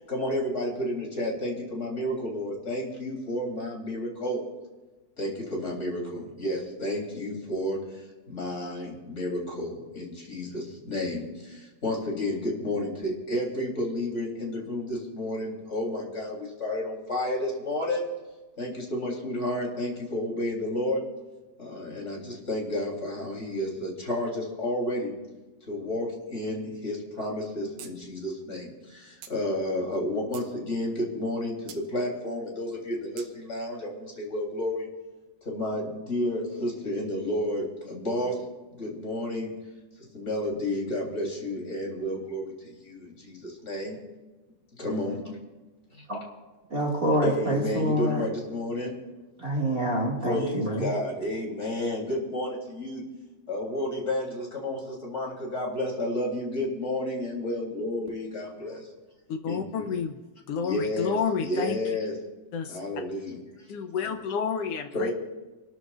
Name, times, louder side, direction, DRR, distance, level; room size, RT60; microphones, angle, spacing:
voice 1, 0.1-4.4 5.2-7.8 8.3-18.0 18.6-21.0 21.6-25.1 25.7-34.9 35.4-38.3 38.7-39.5 40.1-44.0 44.8-45.4 47.2-48.9 50.2-53.0 53.5-58.8 59.5-59.8 60.6-62.2 62.7-63.4 64.9-65.1, left 1 dB, 20° left, -2 dB, 3.3 m, -31 dB
sound 1, 27.8-27.9 28.2-28.3 29.2-29.4 30.0-30.5 31.7-31.8 33.2-33.3, right 9 dB, 80° right, 2.4 m, -45 dB
voice 2, 46.7-48.2 49.4-50.9, right 1 dB, 30° right, -2 dB, 2.1 m, -26 dB
voice 3, 59.3-60.2 60.5-61.8 62.5-62.8 63.7-65.1, left 6 dB, 75° left, 6 dB, 1.4 m, -30 dB
29.0 x 13.0 x 2.5 m, 1.2 s
omnidirectional pair, 3.6 m